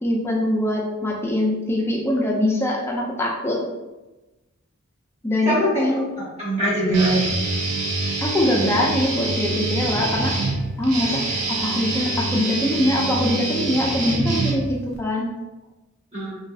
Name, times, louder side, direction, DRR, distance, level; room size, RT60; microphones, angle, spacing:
voice 1, 0.0-3.6 5.2-6.1 8.2-10.3 10.8-11.2 11.5-15.3, left 1 dB, 10° left, -2 dB, 0.4 m, -23 dB
voice 2, 5.4-7.2 15.2-15.3 16.1-16.3, right 1 dB, 30° right, -8 dB, 1.0 m, -22 dB
Guitar, 6.9-15.0, right 2 dB, 85° right, 0.6 m, -25 dB
2.6 x 2.3 x 2.3 m, 1.1 s
head